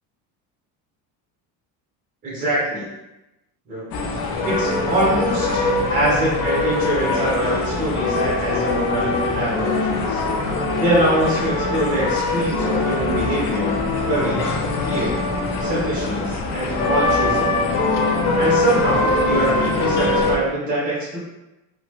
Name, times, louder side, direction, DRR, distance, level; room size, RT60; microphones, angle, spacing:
voice 1, 2.2-2.9 3.7-3.9 4.4-10.2 10.8-13.8 14.0-14.5 14.8-15.2 15.6-17.6 18.4-21.2, right 1 dB, 20° right, -6 dB, 0.9 m, -24 dB
sound 1, 3.9-20.4, left 2 dB, 75° left, 0.6 m, -22 dB
2.9 x 2.1 x 3.1 m, 0.98 s
cardioid pair, 140°, 39 cm